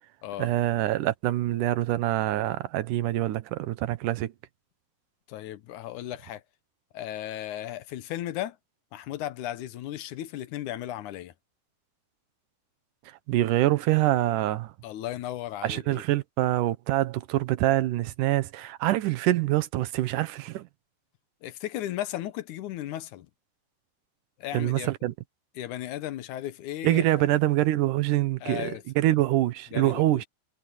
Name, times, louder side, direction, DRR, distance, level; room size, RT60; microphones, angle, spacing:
voice 1, 0.4-4.3 13.1-14.7 15.6-20.7 24.5-25.1 26.8-30.3, right 15 dB, 85° right, 2.5 m, -25 dB
voice 2, 5.3-6.4 6.9-8.6 8.9-11.3 14.8-16.0 21.4-23.3 24.4-24.9 25.6-27.0 28.4-28.8 29.7-30.2, left 13 dB, 80° left, 2.3 m, -35 dB
omnidirectional pair, 3.6 m